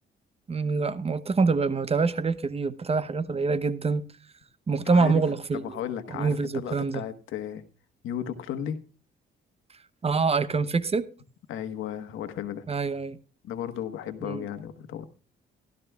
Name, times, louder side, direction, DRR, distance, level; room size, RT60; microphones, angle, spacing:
voice 1, 0.5-4.0 4.7-5.8 6.1-7.0 10.0-11.0 12.7-13.2 14.2-14.4, right 4 dB, 30° right, 0.8 m, -25 dB
voice 2, 4.8-5.2 5.5-7.6 8.0-8.8 11.5-12.7 13.4-15.1, left 9 dB, 80° left, 1.3 m, -34 dB
16.0 x 13.0 x 2.3 m
cardioid pair, 90°, 20 cm